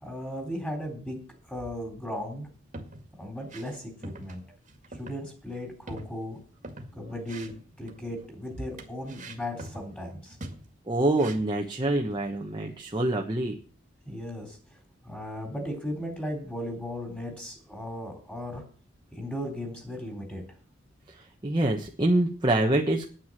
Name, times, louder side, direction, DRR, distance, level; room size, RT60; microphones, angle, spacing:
voice 1, 0.0-1.2 1.5-2.5 3.2-4.4 4.9-6.4 7.0-7.5 7.8-10.4 14.1-14.8 15.0-18.6 19.2-20.4, equal, 10° left, 2 dB, 3.8 m, -36 dB
Boot Footsteps on wooden surface, 2.5-3.1 3.4-3.8 4.0-4.4 4.7-5.2 5.5-5.6 5.9-6.9 7.2-8.0 8.8-9.9 10.3-10.7 11.1-11.6, right 2 dB, 40° right, 2.0 m, -43 dB
voice 2, 10.9-13.6 21.1-23.1, right 1 dB, 25° right, 0 dB, 1.2 m, -26 dB
9.6 x 9.4 x 7.5 m, 0.41 s
head